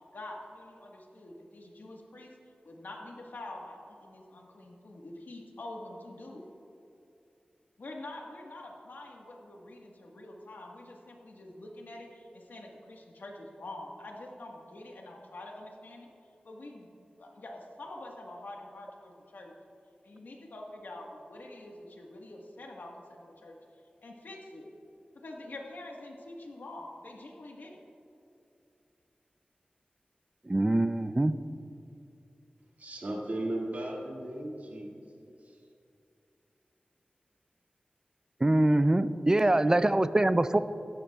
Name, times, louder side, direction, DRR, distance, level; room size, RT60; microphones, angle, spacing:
voice 1, 0.1-2.3 2.6-6.5 7.8-16.1 16.4-16.9 17.2-19.5 20.0-23.6 24.0-24.7 25.1-27.8, left 2 dB, 85° left, 0 dB, 1.5 m, -46 dB
voice 2, 30.5-31.3 38.4-40.6, right 1 dB, 20° right, 13 dB, 0.4 m, -24 dB
voice 3, 32.8-35.7, right 1 dB, 55° right, -2 dB, 2.0 m, -37 dB
16.0 x 12.0 x 2.4 m, 2.7 s
wide cardioid pair, 90°, 3 cm